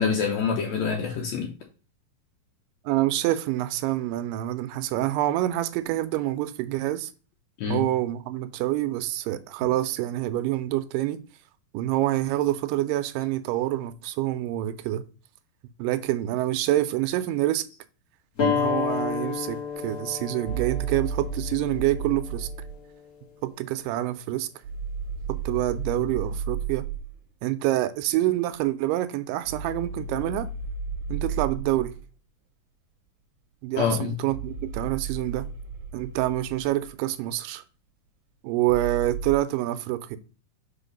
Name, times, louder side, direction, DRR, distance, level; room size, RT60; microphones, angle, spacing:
voice 1, 0.0-1.5 7.6-7.9 33.8-34.2, left 6 dB, 75° left, 1.7 m, -26 dB
voice 2, 2.9-7.1 7.7-11.2 11.7-15.0 15.8-17.6 18.4-19.6 19.8-22.5 23.4-24.5 25.3-26.9 27.4-30.5 31.1-31.9 33.6-35.5 35.9-37.6 38.4-40.2, right 15 dB, 80° right, 2.1 m, -27 dB
sound 1, 18.4-23.5, left 6 dB, 45° left, 1.2 m, -31 dB
sound 2, 20.5-22.8 24.6-27.2 29.4-32.0 34.3-36.9 38.7-39.4, right 5 dB, 60° right, 1.5 m, -33 dB
4.9 x 4.4 x 5.2 m
omnidirectional pair, 4.1 m